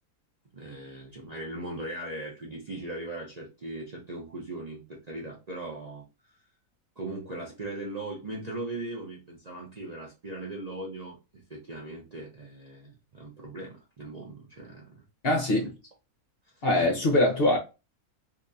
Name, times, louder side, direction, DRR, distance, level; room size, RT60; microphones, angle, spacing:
voice 1, 0.5-6.0 7.0-14.9 15.6-15.7 16.5-16.7, right 2 dB, 40° right, 0.6 m, -39 dB
voice 2, 15.2-15.7 16.6-17.6, left 1 dB, 50° left, 0.9 m, -23 dB
3.6 x 2.8 x 2.6 m
omnidirectional pair, 1.6 m